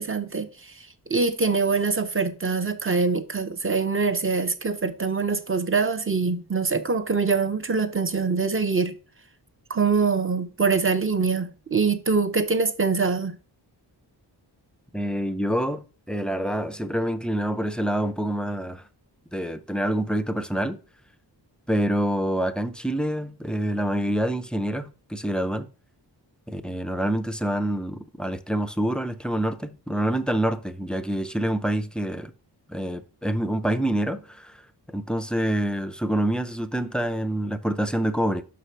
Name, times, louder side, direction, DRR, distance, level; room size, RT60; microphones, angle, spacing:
voice 1, 0.0-8.9 9.7-13.4, right 4 dB, 30° right, 0.7 m, -24 dB
voice 2, 14.9-18.8 19.3-20.8 21.7-25.7 26.5-32.3 32.7-34.6 34.9-38.4, right 1 dB, ahead, 0.5 m, -26 dB
5.9 x 4.9 x 5.6 m
wide cardioid pair, 130°, 42 cm